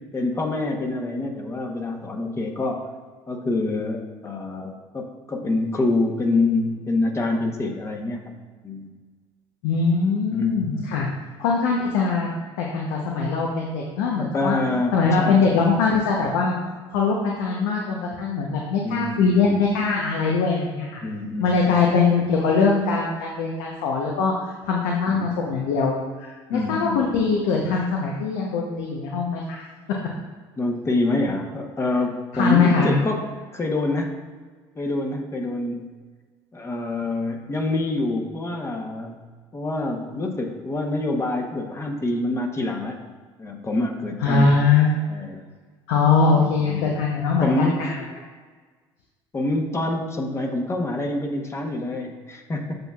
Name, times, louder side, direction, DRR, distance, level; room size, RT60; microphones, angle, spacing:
voice 1, 0.1-2.9 3.3-8.3 8.6-8.9 10.3-11.0 14.1-15.7 18.8-19.6 21.0-22.2 25.1-25.3 26.5-27.1 30.6-33.3 33.5-34.2 34.8-35.9 36.5-39.2 39.5-43.0 43.4-44.5 45.1-45.4 46.3-46.9 47.4-48.1 49.3-52.8, left 2 dB, 25° left, 2 dB, 0.9 m, -26 dB
voice 2, 9.6-11.1 11.4-12.3 12.6-14.6 14.9-16.6 16.9-21.0 21.4-29.6 32.3-33.0 44.2-45.0 45.9-47.9, left 4 dB, 85° left, -1 dB, 0.8 m, -22 dB
7.9 x 5.9 x 2.4 m, 1.5 s
supercardioid pair, 100°, 12 cm